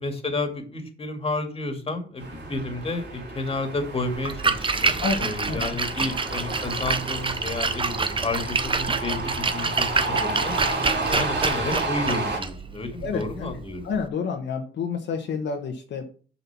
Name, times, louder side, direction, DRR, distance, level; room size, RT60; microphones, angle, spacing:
voice 1, 0.0-10.6 11.1-13.9, left 2 dB, 30° left, 5 dB, 2.1 m, -31 dB
sound 1, 2.2-12.4, right 2 dB, 60° right, 3.4 m, -31 dB
Splash splatter, 4.1-14.1, right 4 dB, 25° right, 0.8 m, -27 dB
voice 2, 5.0-5.6 13.0-16.0, left 5 dB, 65° left, 2 dB, 1.3 m, -29 dB
7.1 x 5.6 x 5.9 m, 0.40 s
cardioid pair, 90°, 20 cm